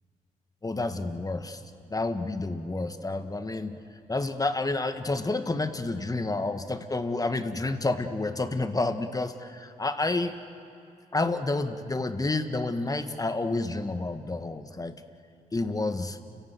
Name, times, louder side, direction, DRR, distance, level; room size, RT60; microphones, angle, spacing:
voice 1, 0.6-1.6 1.9-3.8 4.1-10.3 11.1-15.0 15.5-16.2, left 2 dB, 25° left, 9 dB, 1.7 m, -29 dB
30.0 x 17.5 x 7.8 m, 2.6 s
supercardioid pair, 60°, 15 cm